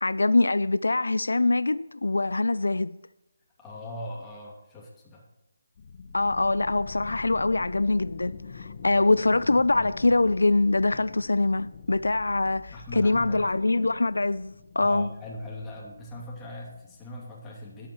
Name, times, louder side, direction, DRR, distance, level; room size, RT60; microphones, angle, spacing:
voice 1, 0.0-3.0 6.1-15.1, left 2 dB, 85° left, 0.3 m, -24 dB
voice 2, 3.6-5.2 12.7-13.5 14.8-17.9, left 1 dB, 10° left, 2.5 m, -40 dB
sound 1, 5.8-17.1, left 5 dB, 45° left, 0.8 m, -44 dB
19.5 x 8.5 x 3.1 m
figure-of-eight pair, 155°, 0 cm